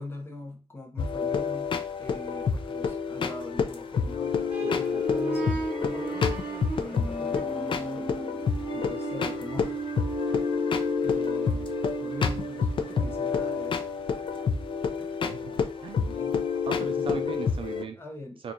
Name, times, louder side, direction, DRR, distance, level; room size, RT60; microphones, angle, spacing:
voice 1, 0.0-8.1 8.7-9.8 10.3-10.5 11.0-13.8 15.0-15.2 16.1-16.5 16.7-17.4 18.0-18.4, left 2 dB, 20° left, 2 dB, 0.8 m, -42 dB
sound 1, 1.0-17.8, left 6 dB, 50° left, 0.4 m, -29 dB
sound 2, 4.5-15.1, right 4 dB, 10° right, 0.9 m, -35 dB
voice 2, 15.2-16.1 16.7-18.0 18.4-18.5, right 6 dB, 55° right, 6 dB, 0.4 m, -37 dB
4.4 x 2.4 x 2.6 m, 0.35 s
wide cardioid pair, 135°, 11 cm